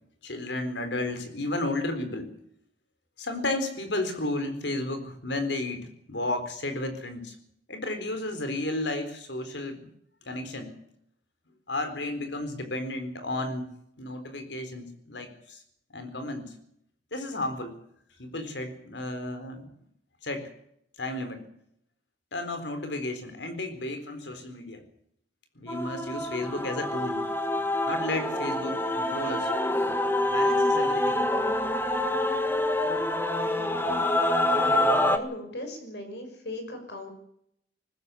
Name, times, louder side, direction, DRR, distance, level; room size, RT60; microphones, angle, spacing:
voice 1, 0.2-2.3 3.2-7.4 7.7-9.9 10.2-10.7 11.7-13.7 14.0-15.6 15.9-16.5 17.1-17.8 18.2-19.7 20.2-20.5 21.0-21.4 22.3-24.8 25.6-27.2 27.9-29.5 30.3-31.3, left 2 dB, 85° left, 8 dB, 4.1 m, -33 dB
Male singing / Female singing / Musical instrument, 25.7-35.2, left 1 dB, 15° left, 1.5 m, -26 dB
voice 2, 33.4-34.1 34.5-37.1, left 1 dB, 70° left, 6 dB, 6.1 m, -39 dB
20.0 x 15.5 x 8.5 m, 0.72 s
head